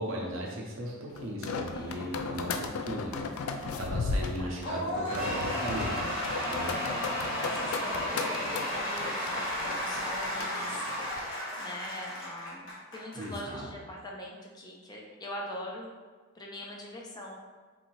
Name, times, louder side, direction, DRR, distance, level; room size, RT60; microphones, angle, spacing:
voice 1, 0.0-6.1 6.5-6.7 13.1-13.7, right 1 dB, 65° right, -2 dB, 0.7 m, -37 dB
sound 1, 1.2-11.2, left 4 dB, 90° left, 0.3 m, -36 dB
voice 2, 1.7-2.4 4.4-4.6 6.7-11.2 11.6-15.9 16.3-17.4, left 1 dB, 20° left, -2 dB, 0.4 m, -43 dB
Cheering / Applause / Crowd, 4.6-13.3, equal, 65° left, 1.2 m, -33 dB
3.9 x 2.6 x 3.0 m, 1.4 s
head